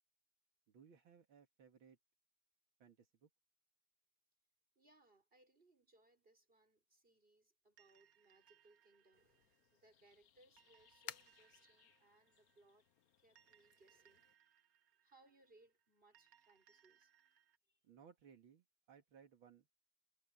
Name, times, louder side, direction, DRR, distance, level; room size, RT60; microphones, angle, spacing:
voice 1, 0.7-2.0 2.8-3.3 17.8-19.8, right 7 dB, 80° right, 2.6 m, -64 dB
voice 2, 4.8-12.9 13.2-14.3 15.0-17.1 17.7-17.8, right 2 dB, 25° right, 6.3 m, -70 dB
sound 1, 7.8-17.6, right 10 dB, 50° right, 1.4 m, -73 dB
sound 2, 9.1-14.3, left 11 dB, 60° left, 1.0 m, -59 dB
omnidirectional pair, 2.2 m